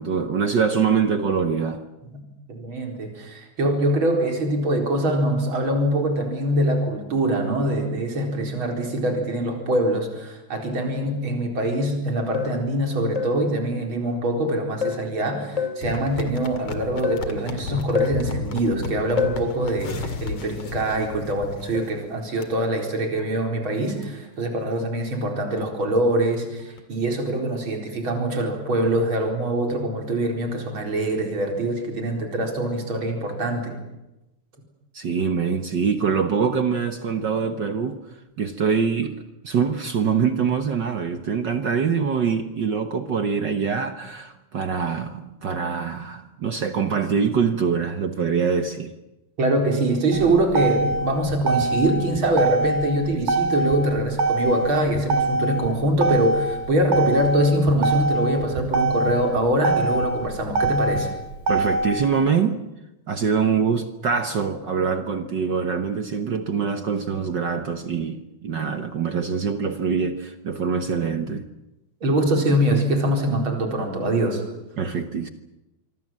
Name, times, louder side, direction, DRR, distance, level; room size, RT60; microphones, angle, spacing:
voice 1, 0.0-1.8 34.9-38.0 38.4-39.2 39.4-48.9 61.5-62.6 63.1-71.5 74.8-75.3, right 6 dB, 60° right, 8 dB, 1.2 m, -24 dB
voice 2, 2.5-33.8 49.4-61.1 72.0-74.4, right 1 dB, 40° right, 3 dB, 5.0 m, -23 dB
sound 1, 12.3-12.6 13.1-13.5 14.8-15.1 15.6-15.9 17.0-17.3 17.9-18.3 19.2-19.5 21.7-22.0 22.5-22.7, left 6 dB, 35° left, 0.6 m, -27 dB
sound 2, 15.8-22.0 22.4-22.5 23.0-23.2 23.6-23.7 24.0-24.1 24.6-24.8 25.2-25.3 25.6-25.7 26.0-26.8 27.4-27.5, left 4 dB, 55° left, 3.0 m, -33 dB
Motor vehicle (road), 50.1-62.1, right 2 dB, 75° right, 3.5 m, -24 dB
25.5 x 24.0 x 7.6 m, 0.96 s
omnidirectional pair, 3.5 m